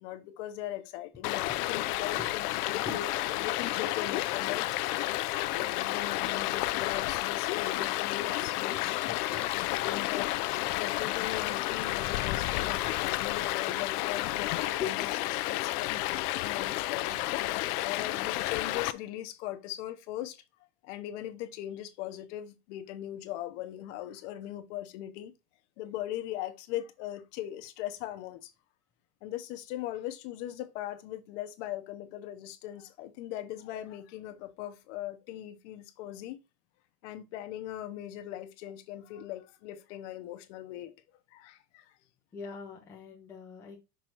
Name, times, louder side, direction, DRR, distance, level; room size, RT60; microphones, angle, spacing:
voice 1, 0.0-9.5 9.8-10.3 10.8-17.2 17.8-20.4 20.8-25.3 25.8-28.5 29.2-36.4 37.0-40.9 41.3-41.9, left 12 dB, 50° left, 0.9 m, -40 dB
Stream, 1.2-18.9, left 17 dB, 70° left, 0.6 m, -31 dB
voice 2, 9.2-9.5 10.7-10.8 14.8-14.9 42.3-43.8, left 6 dB, 5° left, 0.5 m, -40 dB
6.3 x 3.7 x 4.3 m
supercardioid pair, 175°, 48 cm